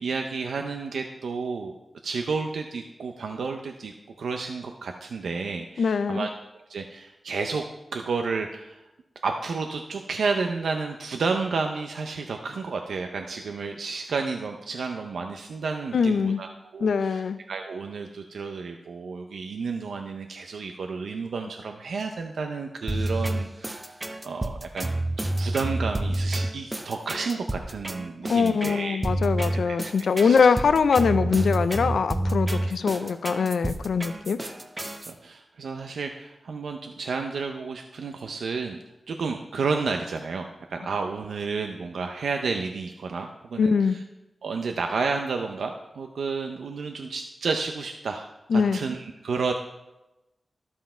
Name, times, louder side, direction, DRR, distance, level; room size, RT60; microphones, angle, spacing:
voice 1, 0.0-1.7 2.0-6.3 6.5-7.6 7.9-8.8 9.2-16.5 16.7-17.2 17.5-23.9 24.2-24.9 25.2-29.0 29.6-29.8 30.2-30.4 33.0-33.1 35.1-38.8 39.1-44.0 44.4-49.5, right 4 dB, 90° right, 4 dB, 0.5 m, -31 dB
voice 2, 5.8-6.3 15.9-16.4 16.8-17.4 28.3-34.4 43.6-44.0 48.5-48.8, left 5 dB, 85° left, 12 dB, 0.4 m, -22 dB
sound 1, 22.9-35.1, right 1 dB, 25° right, 0.8 m, -29 dB
12.5 x 5.6 x 4.4 m, 0.98 s
cardioid pair, 60°, 0 cm